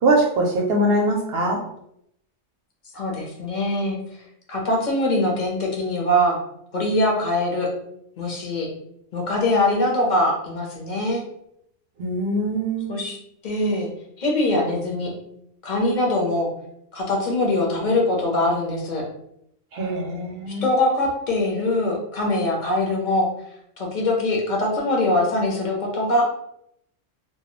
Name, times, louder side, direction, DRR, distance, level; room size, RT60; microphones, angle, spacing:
voice 1, 0.0-1.6 12.0-12.9 19.7-20.6, right 1 dB, 65° right, 0 dB, 0.7 m, -22 dB
voice 2, 2.9-4.0 4.5-6.4 6.7-7.7 8.2-8.7 9.1-11.2 12.9-13.2 13.4-13.9 14.2-15.1 15.6-16.5 16.9-19.0 20.6-23.3 23.8-26.2, left 1 dB, 45° left, -1 dB, 0.7 m, -22 dB
2.3 x 2.1 x 2.9 m, 0.74 s
omnidirectional pair, 1.3 m